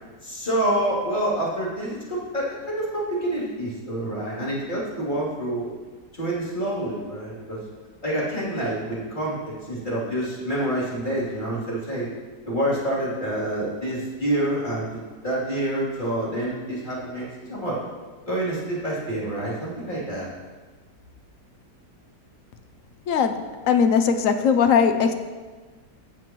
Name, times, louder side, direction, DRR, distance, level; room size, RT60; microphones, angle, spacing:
voice 1, 0.2-5.7 6.1-7.6 8.0-12.1 12.4-17.8 18.3-20.3, right 1 dB, 25° left, -8 dB, 3.1 m, -27 dB
voice 2, 23.1-25.1, left 6 dB, 65° left, 7 dB, 0.9 m, -20 dB
14.5 x 7.7 x 3.0 m, 1.4 s
omnidirectional pair, 1.8 m